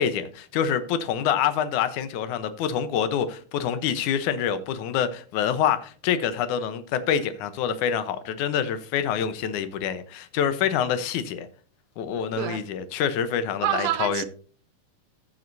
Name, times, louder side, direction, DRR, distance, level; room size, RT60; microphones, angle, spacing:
voice 1, 0.0-11.5 12.0-14.3, left 8 dB, 70° left, 2.2 m, -26 dB
voice 2, 13.6-14.3, right 12 dB, 90° right, 2.6 m, -26 dB
15.5 x 7.7 x 2.7 m
omnidirectional pair, 4.1 m